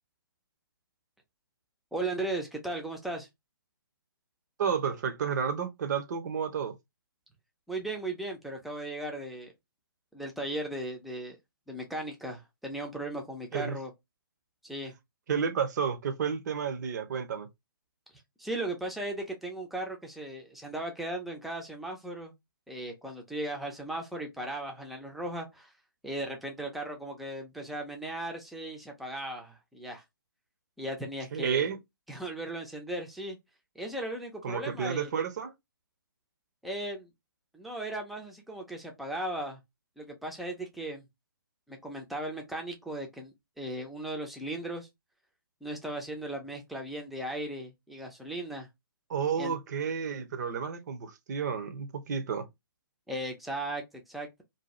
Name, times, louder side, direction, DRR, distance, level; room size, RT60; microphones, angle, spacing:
voice 1, 1.9-3.3 7.7-9.5 10.1-11.4 11.7-13.9 14.6-14.9 18.4-22.3 22.7-25.7 26.0-30.0 30.8-31.7 32.1-33.4 33.8-35.1 36.6-37.1 37.5-39.6 40.0-41.0 41.7-44.9 45.6-48.7 49.4-49.6 53.1-54.4, right 1 dB, ahead, 0.5 m, -37 dB
voice 2, 4.6-6.7 13.5-13.8 15.3-17.5 31.3-31.8 34.4-35.5 49.1-52.5, right 7 dB, 50° right, 0.6 m, -31 dB
2.7 x 2.2 x 3.0 m
figure-of-eight pair, 135°, 12 cm